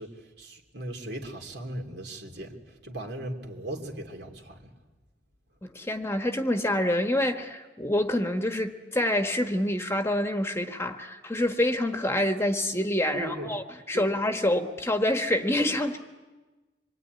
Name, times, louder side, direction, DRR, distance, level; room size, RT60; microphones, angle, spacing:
voice 1, 0.0-4.7 13.1-13.5 13.9-14.1, right 1 dB, 65° right, 3 dB, 3.2 m, -38 dB
voice 2, 5.6-16.0, left 1 dB, 15° left, 6 dB, 1.3 m, -27 dB
26.0 x 23.0 x 9.5 m, 1.2 s
head